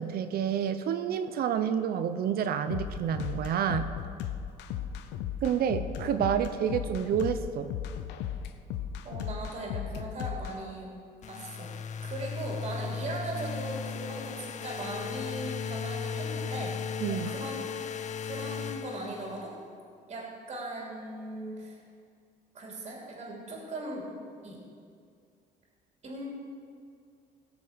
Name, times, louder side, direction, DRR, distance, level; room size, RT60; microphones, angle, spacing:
voice 1, 0.0-3.9 5.4-7.7 17.0-17.3, right 8 dB, 65° right, 10 dB, 0.7 m, -29 dB
sound 1, 2.7-10.6, left 9 dB, 85° left, 0.7 m, -36 dB
voice 2, 9.0-10.9 11.3-11.7 12.0-16.8 17.0-17.7 18.2-19.6 20.1-21.8 22.5-24.1 24.4-24.6 26.0-26.3, right 2 dB, 40° right, -3 dB, 3.1 m, -38 dB
sound 2, 11.2-19.5, left 6 dB, 45° left, 0.5 m, -36 dB
18.0 x 6.8 x 5.1 m, 2.3 s
cardioid pair, 110°, 17 cm